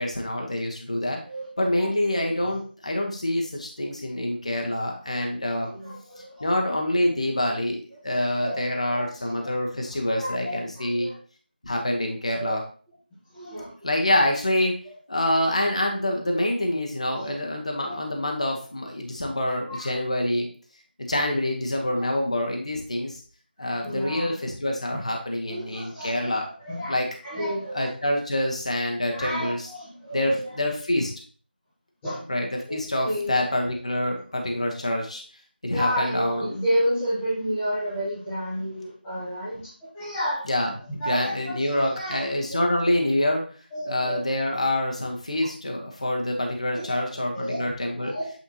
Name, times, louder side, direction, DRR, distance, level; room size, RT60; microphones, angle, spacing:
voice 1, 0.0-1.2 1.6-5.7 6.2-11.1 11.6-12.6 13.8-14.7 15.1-20.5 21.0-23.2 23.6-26.5 26.9-27.1 27.7-29.7 30.1-31.1 32.3-35.2 35.6-36.4 40.5-43.4 43.8-48.1, left 1 dB, 40° left, 1 dB, 1.0 m, -26 dB
voice 2, 5.7-6.5 8.4-8.6 8.9-9.3 10.1-11.1 12.3-12.5 13.3-13.7 17.0-17.3 17.9-18.0 19.7-19.9 21.9-22.1 23.6-24.4 25.5-26.3 26.6-26.9 27.2-27.9 29.1-30.4 32.0-32.2 32.7-32.8 33.0-33.4 35.7-40.5 41.0-42.3 43.7-44.2 45.4-45.5 46.7-47.0 47.3-47.7 48.0-48.3, equal, 5° left, -12 dB, 0.9 m, -31 dB
8.5 x 4.3 x 2.8 m, 0.41 s
figure-of-eight pair, 180°, 6 cm